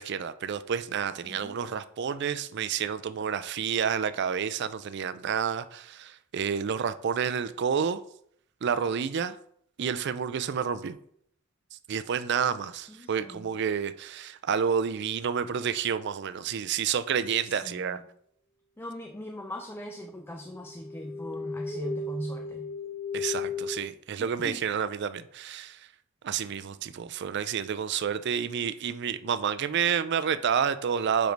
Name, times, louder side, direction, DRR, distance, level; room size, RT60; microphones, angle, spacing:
voice 1, 0.0-8.0 8.6-9.4 9.8-11.0 11.9-18.0 23.1-25.8 26.2-31.3, right 7 dB, 55° right, 0.4 m, -29 dB
voice 2, 1.3-1.6 12.9-13.5 17.5-18.0 18.8-22.7 24.2-24.6, equal, 10° left, 0.4 m, -40 dB
sound 1, 20.5-23.8, left 4 dB, 40° left, 1.0 m, -35 dB
5.1 x 4.6 x 5.2 m
head